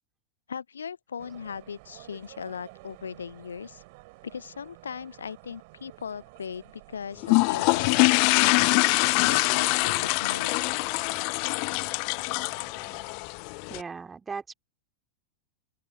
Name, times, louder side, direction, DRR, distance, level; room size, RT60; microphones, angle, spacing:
voice 1, 0.5-3.8 4.2-8.8 9.2-10.7, left 7 dB, 70° left, 0.9 m, -39 dB
sound 1, 1.2-13.1, right 26 dB, 50° right, 5.3 m, -52 dB
sound 2, 7.2-13.8, left 40 dB or more, 45° left, 0.6 m, -24 dB
voice 2, 13.7-14.5, right 5 dB, 15° right, 4.1 m, -37 dB
open air
figure-of-eight pair, 90°, 0 cm